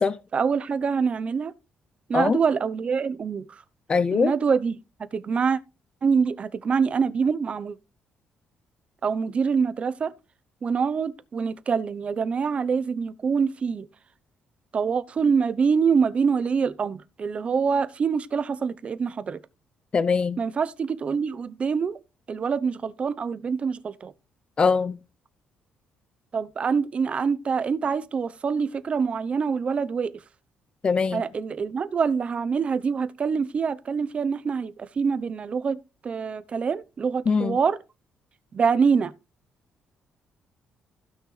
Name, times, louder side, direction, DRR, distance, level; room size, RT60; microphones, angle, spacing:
voice 1, 0.3-1.5 2.1-3.6 4.1-5.6 6.0-7.8 9.0-10.1 10.6-13.9 14.7-19.4 20.4-22.0 22.3-24.1 26.3-30.2 31.1-37.8 38.5-39.1, right 5 dB, 40° right, 0.7 m, -25 dB
voice 2, 3.9-4.3 19.9-20.4 24.6-25.0 30.8-31.2 37.3-37.6, left 5 dB, 30° left, 0.6 m, -22 dB
15.5 x 6.1 x 3.2 m
cardioid pair, 125°, 3 cm